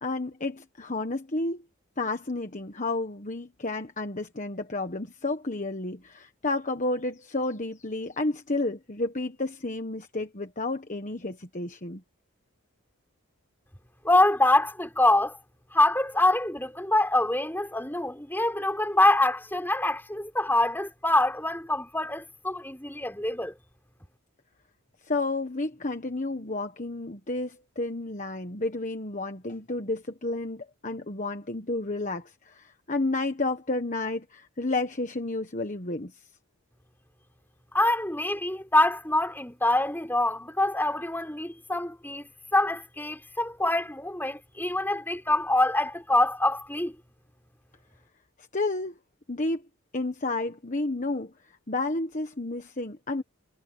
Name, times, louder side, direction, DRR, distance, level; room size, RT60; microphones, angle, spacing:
voice 1, 0.0-1.6 2.0-12.0 25.0-36.2 48.5-49.0 49.3-49.7 49.9-53.2, left 2 dB, 35° left, 1.3 m, -31 dB
voice 2, 14.0-15.4 15.7-23.5 37.7-47.0, left 2 dB, 10° left, 5.7 m, -25 dB
head